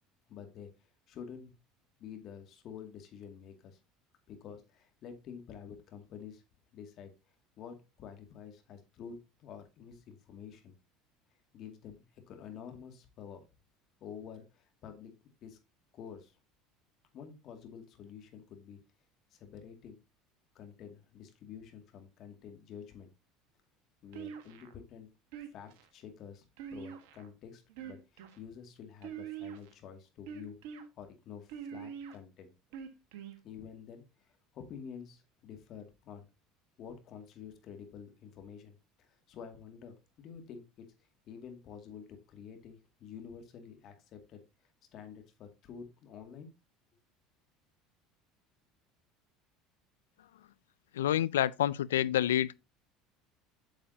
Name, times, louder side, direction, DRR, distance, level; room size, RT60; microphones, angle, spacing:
voice 1, 0.3-0.7 1.1-1.5 2.0-3.8 4.3-6.4 6.7-7.1 7.6-10.7 11.5-13.5 14.0-15.1 15.4-15.6 15.9-16.3 17.1-18.8 19.3-20.0 20.5-23.1 24.0-25.1 25.5-26.4 26.7-30.6 31.0-32.5 33.4-36.3 36.8-40.9 41.3-44.4 44.9-46.5, left 7 dB, 55° left, 2.2 m, -49 dB
sound 1, 24.1-24.7 25.3-25.9 26.6-27.3 27.7-28.4 29.0-29.7 30.3-30.8 31.5-32.1 32.7-33.4, right 8 dB, 75° right, 1.5 m, -44 dB
voice 2, 50.9-52.6, left 12 dB, 85° left, 0.3 m, -28 dB
8.9 x 7.1 x 2.8 m
hypercardioid pair, 80°, 0 cm